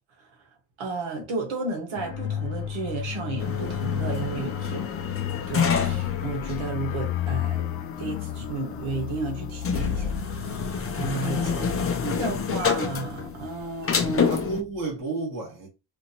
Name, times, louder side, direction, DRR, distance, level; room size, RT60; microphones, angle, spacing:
voice 1, 0.8-5.2 5.5-7.7 8.0-11.5 12.0-14.3, right 3 dB, 75° right, 1.7 m, -33 dB
sound 1, 2.0-14.3 14.6-14.8, left 9 dB, 70° left, 0.7 m, -33 dB
sound 2, 3.4-14.6, left 6 dB, 30° left, 0.6 m, -29 dB
voice 2, 11.3-12.0 14.2-15.7, right 3 dB, 40° right, 2.2 m, -33 dB
5.0 x 2.8 x 2.9 m
cardioid pair, 155°, 49 cm